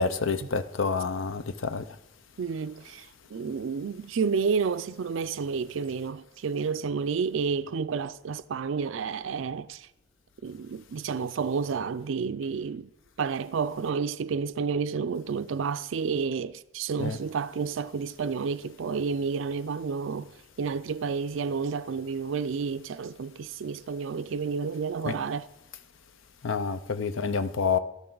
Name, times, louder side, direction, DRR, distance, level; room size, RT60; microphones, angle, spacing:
voice 1, 0.0-1.9 17.0-17.2 25.0-25.1 26.4-27.8, left 4 dB, 80° left, 0.6 m, -28 dB
voice 2, 2.4-9.9 10.4-12.9 13.2-20.3 20.6-25.5, right 5 dB, 75° right, 0.4 m, -30 dB
13.0 x 12.0 x 3.9 m
head